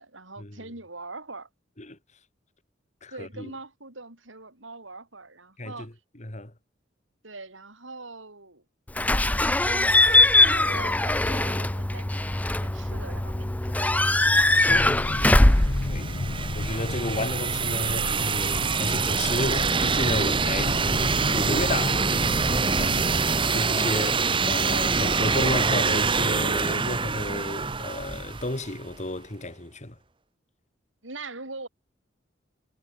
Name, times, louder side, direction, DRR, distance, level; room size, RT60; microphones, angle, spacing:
voice 1, 0.0-1.5 3.1-5.9 7.2-8.6 9.2-14.6 31.0-31.7, right 3 dB, 85° right, 8.0 m, -42 dB
voice 2, 3.0-3.5 5.6-5.9 6.2-6.5 15.4-16.1 16.5-21.0 21.3-22.5 22.8-30.0, left 1 dB, 40° left, 2.9 m, -32 dB
Slam / Squeak / Alarm, 9.0-16.9, left 2 dB, 10° left, 0.5 m, -21 dB
sound 1, 14.7-23.2, left 2 dB, 55° left, 1.0 m, -33 dB
sound 2, 15.1-28.8, right 4 dB, 25° right, 1.1 m, -25 dB
head